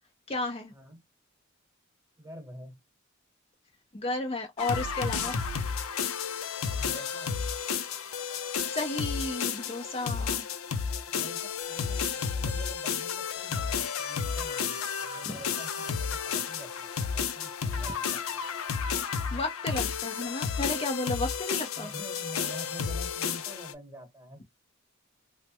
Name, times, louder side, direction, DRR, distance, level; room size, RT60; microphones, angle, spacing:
voice 1, 0.3-0.7 3.9-5.4 8.7-10.5 15.2-15.4 19.3-21.9, left 2 dB, 30° left, 0.6 m, -33 dB
voice 2, 2.2-2.8 6.6-7.4 11.1-18.4 21.7-24.4, equal, 15° right, 1.1 m, -47 dB
sound 1, 4.6-23.7, left 6 dB, 80° left, 0.5 m, -32 dB
3.1 x 2.1 x 2.9 m
head